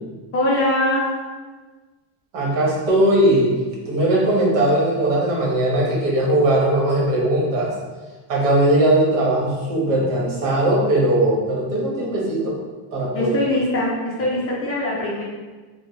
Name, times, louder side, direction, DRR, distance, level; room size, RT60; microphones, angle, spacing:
voice 1, 0.3-1.1 13.1-15.2, left 1 dB, 30° left, -6 dB, 0.4 m, -22 dB
voice 2, 2.3-3.6 3.9-7.7 8.3-12.6 12.9-13.3, right 1 dB, 80° right, -4 dB, 1.2 m, -19 dB
3.3 x 2.1 x 3.1 m, 1.3 s
cardioid pair, 175°, 47 cm